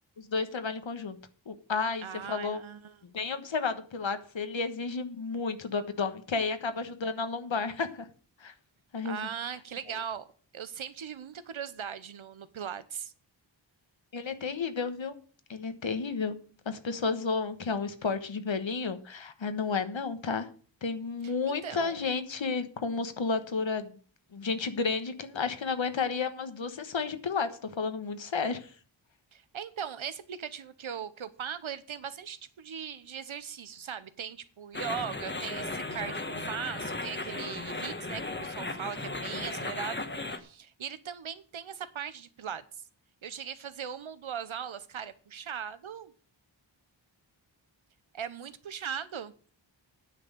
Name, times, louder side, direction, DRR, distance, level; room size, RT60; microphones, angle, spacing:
voice 1, 0.2-1.2 1.5-2.6 3.1-8.1 8.4-8.5 8.9-9.3 14.1-15.1 15.5-16.4 16.6-20.5 20.8-24.0 24.3-28.7, left 4 dB, 75° left, 1.3 m, -32 dB
voice 2, 2.0-3.0 9.0-10.3 10.5-13.1 21.2-22.0 29.3-40.0 40.3-42.8 43.2-46.1 48.1-49.3, right 8 dB, 85° right, 1.0 m, -39 dB
sound 1, 34.7-40.4, left 2 dB, 25° left, 1.2 m, -36 dB
9.7 x 6.2 x 7.9 m
wide cardioid pair, 95°, 47 cm